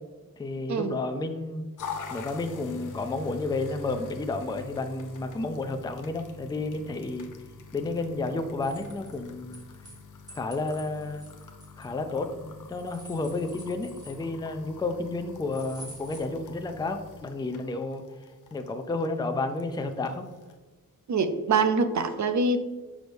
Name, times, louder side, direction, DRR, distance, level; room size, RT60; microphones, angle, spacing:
voice 1, 0.4-1.7 2.1-7.3 7.7-9.6 10.3-11.3 11.8-18.0 18.5-20.3, left 2 dB, 15° left, 7 dB, 0.4 m, -31 dB
sound 1, 1.8-20.6, left 5 dB, 65° left, 0.6 m, -45 dB
sound 2, 8.6-10.0 10.3-12.2 12.7-14.5 15.5-16.2, equal, 10° right, 1.8 m, -49 dB
voice 2, 21.1-22.6, right 4 dB, 55° right, 9 dB, 0.6 m, -24 dB
6.2 x 5.2 x 3.4 m, 1.2 s
wide cardioid pair, 120°, 34 cm